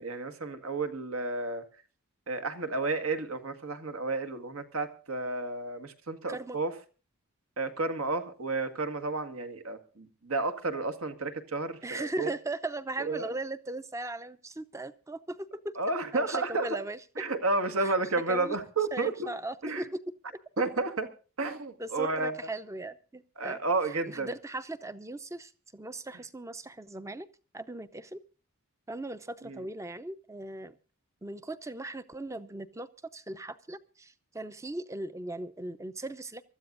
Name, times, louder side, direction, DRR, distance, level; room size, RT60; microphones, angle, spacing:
voice 1, 0.0-1.6 2.3-6.7 7.6-12.3 13.0-13.3 15.8-16.7 17.2-19.1 19.6-19.8 20.6-21.1 21.4-22.3 23.4-24.3 29.4-29.6, right 3 dB, 75° right, 1.8 m, -31 dB
voice 2, 11.8-15.8 16.1-17.3 17.8-17.9 18.3-18.6 18.9-20.0 21.8-23.6 23.9-27.3 27.5-28.2 28.9-30.8 31.2-36.4, right 2 dB, 15° right, 0.6 m, -38 dB
24.5 x 13.5 x 2.6 m
head